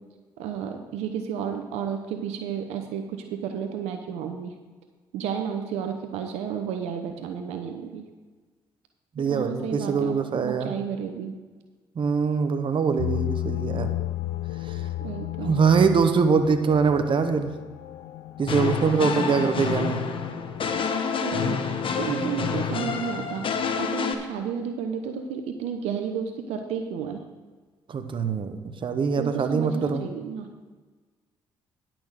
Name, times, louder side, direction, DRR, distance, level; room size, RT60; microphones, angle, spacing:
voice 1, 0.4-4.5 5.1-8.0 9.2-11.4 15.0-15.6 21.2-23.5 23.8-27.2 29.2-30.5, right 7 dB, 80° right, 5 dB, 0.9 m, -32 dB
voice 2, 9.2-10.7 12.0-13.9 15.5-17.5 18.4-20.1 22.1-22.5 27.9-30.0, right 5 dB, 50° right, 8 dB, 1.0 m, -23 dB
sound 1, 13.0-20.9, left 13 dB, 80° left, 0.5 m, -34 dB
sound 2, 18.5-24.1, left 6 dB, 55° left, 1.1 m, -28 dB
10.5 x 6.2 x 6.4 m, 1.4 s
hypercardioid pair, 55°, 11 cm